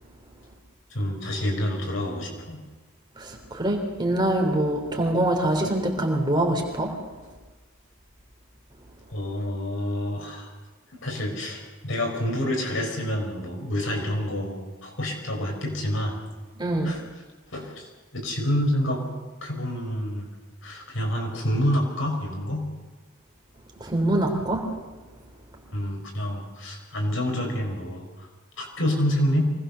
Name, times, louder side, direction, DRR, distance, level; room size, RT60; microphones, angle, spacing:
voice 1, 0.9-2.6 9.1-10.5 10.9-16.2 16.8-17.0 17.5-19.0 19.4-20.3 20.6-22.7 25.7-28.3 28.6-29.4, equal, 65° left, 1 dB, 5.8 m, -28 dB
voice 2, 3.2-6.9 16.6-16.9 23.8-24.6, right 1 dB, 20° right, 1 dB, 3.3 m, -24 dB
24.5 x 19.5 x 6.9 m, 1.3 s
head